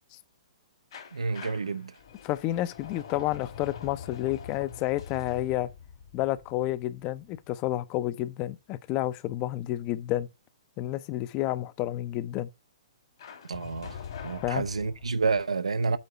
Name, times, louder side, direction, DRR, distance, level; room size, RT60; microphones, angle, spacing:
sound 1, 0.9-7.7 13.2-15.4, left 7 dB, 55° left, 1.8 m, -44 dB
voice 1, 1.1-1.9 13.5-14.0 14.2-16.0, right 4 dB, 80° right, 0.7 m, -29 dB
voice 2, 2.2-5.7 6.1-10.3 10.8-12.5 14.4-14.7, left 15 dB, 30° left, 0.6 m, -30 dB
8.4 x 3.7 x 5.2 m
figure-of-eight pair, 120°, 3 cm